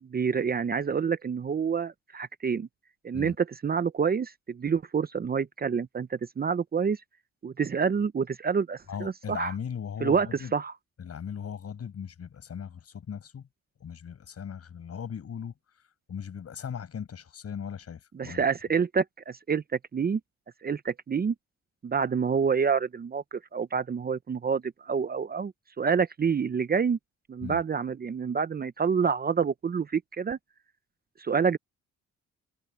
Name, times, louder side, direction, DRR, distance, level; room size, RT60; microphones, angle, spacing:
voice 1, 0.0-2.7 3.0-7.0 7.4-9.5 10.0-10.3 10.5-10.7 18.1-19.6 19.9-20.2 20.6-21.3 21.8-25.5 25.8-27.0 27.3-30.4 31.2-31.6, right 6 dB, 30° right, 0.7 m, -27 dB
voice 2, 8.9-10.5 11.0-13.5 13.8-15.5 16.1-18.5 27.4-27.6, left 7 dB, 55° left, 7.8 m, -38 dB
open air
cardioid pair, 90°, 30 cm